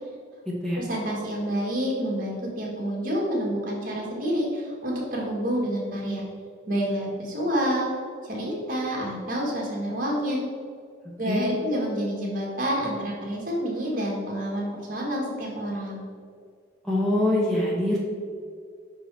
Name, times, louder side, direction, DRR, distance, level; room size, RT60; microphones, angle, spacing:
voice 1, 0.8-6.2 6.7-7.9 8.2-10.4 11.2-16.1, equal, 45° right, -3 dB, 1.6 m, -28 dB
voice 2, 16.8-18.0, left 1 dB, ahead, -6 dB, 0.9 m, -24 dB
5.7 x 4.6 x 4.6 m, 2.1 s
head